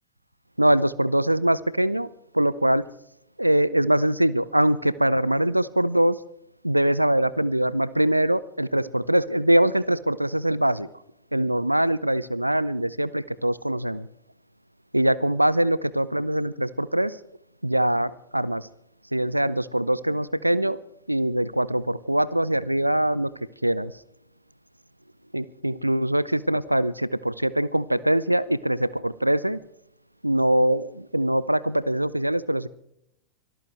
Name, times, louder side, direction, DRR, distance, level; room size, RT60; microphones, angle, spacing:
voice 1, 0.6-2.1 2.3-2.8 3.4-6.2 6.6-10.9 11.3-14.1 14.9-17.2 17.6-18.7 19.1-20.8 21.1-23.3 23.6-23.9 25.3-29.6 30.2-32.7, right 1 dB, 85° right, 19 dB, 0.5 m, -23 dB
25.0 x 14.0 x 3.4 m, 0.75 s
figure-of-eight pair, 90°, 0 cm